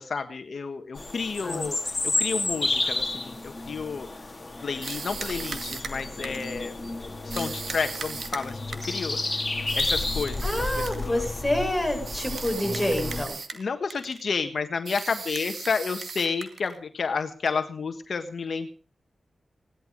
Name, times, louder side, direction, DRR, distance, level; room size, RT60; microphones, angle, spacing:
voice 1, 0.0-4.3 4.6-6.7 7.2-9.4 9.7-11.2 13.5-18.7, left 5 dB, 65° left, 8 dB, 1.4 m, -31 dB
sound 1, 1.0-13.2, left 2 dB, 25° left, 3.1 m, -31 dB
sound 2, 4.8-6.5 7.3-9.0 9.7-11.1 12.0-13.6 13.9-14.2 14.8-16.8, right 5 dB, 70° right, 2.2 m, -37 dB
voice 2, 10.4-13.3, left 1 dB, 5° left, 2 dB, 6.5 m, -27 dB
18.0 x 12.0 x 5.2 m, 0.40 s
cardioid pair, 75°, 0 cm